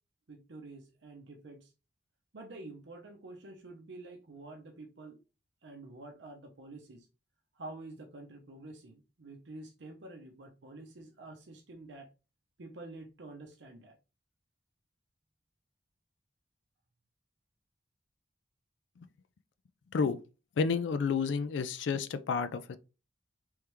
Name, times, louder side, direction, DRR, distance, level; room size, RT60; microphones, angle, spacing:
voice 1, 0.3-1.7 2.3-5.2 5.6-7.1 7.5-12.1 12.6-14.0, right 2 dB, 70° right, 0.7 m, -48 dB
voice 2, 20.6-22.8, left 5 dB, 80° left, 0.4 m, -30 dB
3.5 x 3.3 x 3.0 m
head